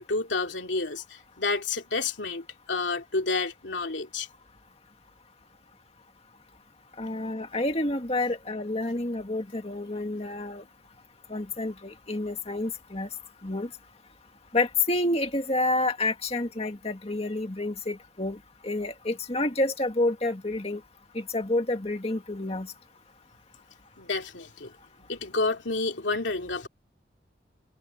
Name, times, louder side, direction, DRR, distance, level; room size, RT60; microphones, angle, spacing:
voice 1, 0.0-4.3 24.0-24.7 25.1-26.7, left 3 dB, 90° left, 2.9 m, -30 dB
voice 2, 7.0-10.6 11.3-13.1 13.4-13.7 14.5-18.4 18.6-20.8 21.1-22.7, left 2 dB, 35° left, 2.0 m, -29 dB
head